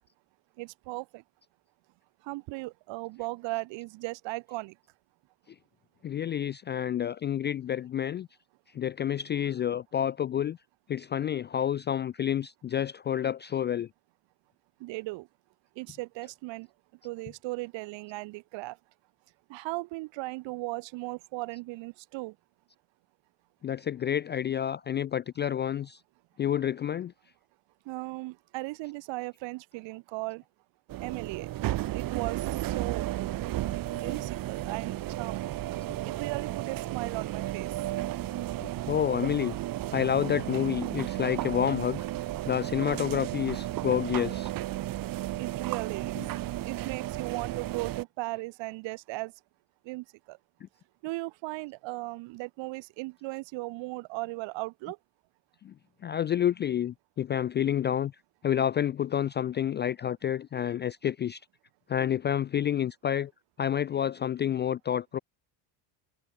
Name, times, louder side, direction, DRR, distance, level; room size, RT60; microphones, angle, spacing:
voice 1, 0.6-1.2 2.2-4.7 14.8-15.3 15.7-16.7 17.0-18.8 19.5-22.3 27.8-30.4 31.0-33.1 34.0-35.5 36.0-37.8 45.4-46.2 46.7-49.3 49.8-50.4 51.0-55.0, right 23 dB, 65° right, 1.3 m, -37 dB
voice 2, 6.0-8.3 8.7-10.6 10.9-13.9 23.6-26.0 26.4-27.1 34.0-34.2 38.6-39.5 39.9-42.0 42.5-44.5 46.2-46.3 55.6-55.7 56.0-58.1 58.4-61.4 61.9-63.3 63.6-65.2, left 10 dB, 25° left, 0.3 m, -29 dB
sound 1, 30.9-48.0, right 15 dB, 45° right, 1.4 m, -33 dB
cardioid pair, 165°, 47 cm